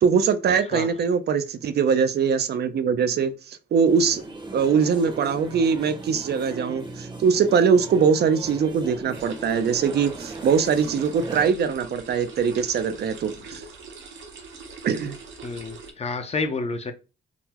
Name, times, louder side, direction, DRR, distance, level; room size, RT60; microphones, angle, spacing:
voice 1, 0.0-4.2 4.5-13.6 14.8-15.2, right 6 dB, 60° right, 0.4 m, -22 dB
sound 1, 3.9-11.5, right 2 dB, 25° right, 0.7 m, -37 dB
sound 2, 9.1-15.9, right 4 dB, 85° right, 0.8 m, -42 dB
voice 2, 15.4-16.9, left 3 dB, 35° left, 0.6 m, -29 dB
3.8 x 2.0 x 2.8 m
cardioid pair, 80°, 19 cm